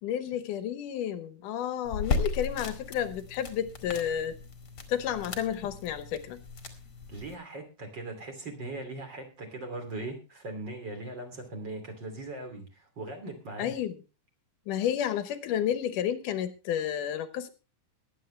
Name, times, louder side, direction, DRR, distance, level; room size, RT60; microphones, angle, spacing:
voice 1, 0.0-4.4 4.9-6.4 13.6-14.0 14.7-17.5, left 10 dB, 70° left, 12 dB, 2.3 m, -31 dB
sound 1, 1.8-7.3, left 4 dB, 35° left, 1.9 m, -36 dB
voice 2, 7.1-13.7, right 2 dB, 30° right, 4 dB, 3.1 m, -39 dB
22.0 x 8.8 x 3.2 m, 0.31 s
omnidirectional pair, 4.2 m